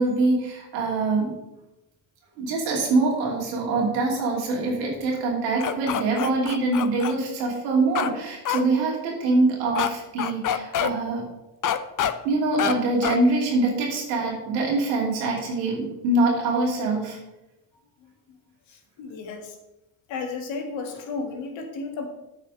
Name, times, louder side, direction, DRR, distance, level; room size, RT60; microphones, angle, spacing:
voice 1, 0.0-1.3 2.4-11.2 12.2-17.2, right 2 dB, 90° right, -2 dB, 2.8 m, -24 dB
sound 1, 5.6-7.1 8.0-8.1 8.5-8.6 9.8-9.9 10.2-10.9 11.6-12.1 12.6-12.7 13.0-13.2, left 9 dB, 40° left, 0.8 m, -26 dB
voice 2, 18.7-19.6 20.1-22.1, left 4 dB, 70° left, 4 dB, 1.8 m, -33 dB
8.9 x 5.0 x 6.3 m, 0.97 s
hypercardioid pair, 60°, 47 cm